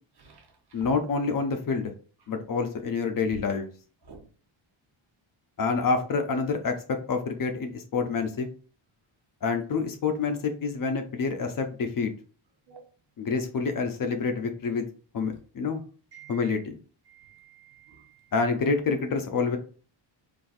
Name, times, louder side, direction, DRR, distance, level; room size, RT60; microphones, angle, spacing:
voice 1, 0.2-0.9 4.0-4.3 12.7-12.9 16.1-16.6 17.1-18.3, right 6 dB, 55° right, 1 dB, 1.0 m, -51 dB
voice 2, 0.7-1.9 2.3-3.7 5.6-8.5 9.4-12.1 13.2-14.9 15.1-15.8 16.3-16.8 18.3-19.6, left 4 dB, 45° left, 6 dB, 0.5 m, -27 dB
4.1 x 2.6 x 2.4 m, 0.38 s
wide cardioid pair, 150°, 48 cm